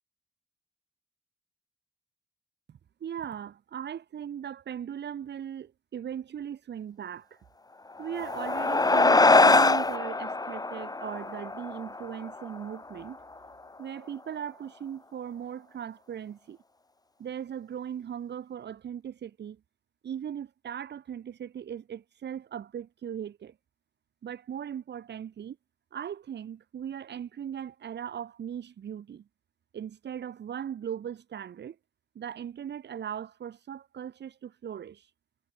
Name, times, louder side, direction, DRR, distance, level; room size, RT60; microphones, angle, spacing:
voice 1, 2.7-7.4 8.0-13.2 13.8-16.6 17.2-19.6 20.0-23.5 24.2-25.6 25.9-29.2 29.7-31.8 32.1-35.1, right 9 dB, 90° right, 7.9 m, -38 dB
sound 1, 8.0-12.8, left 3 dB, 20° left, 1.3 m, -23 dB
cardioid pair, 80°, 17 cm